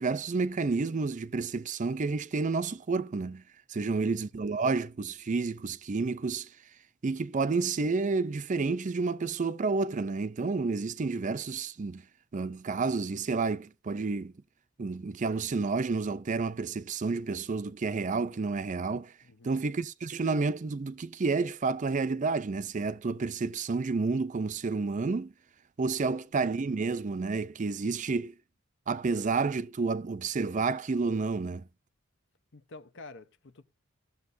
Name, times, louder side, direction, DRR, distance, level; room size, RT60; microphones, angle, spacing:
voice 1, 0.0-3.4 3.7-6.5 7.0-12.0 12.3-14.3 14.8-19.1 19.4-25.3 25.8-28.3 28.9-31.7, right 4 dB, 40° right, 0.4 m, -30 dB
voice 2, 3.8-4.2 19.2-19.6 25.9-26.3 32.5-33.6, left 3 dB, 65° left, 0.9 m, -50 dB
18.0 x 6.9 x 2.6 m
head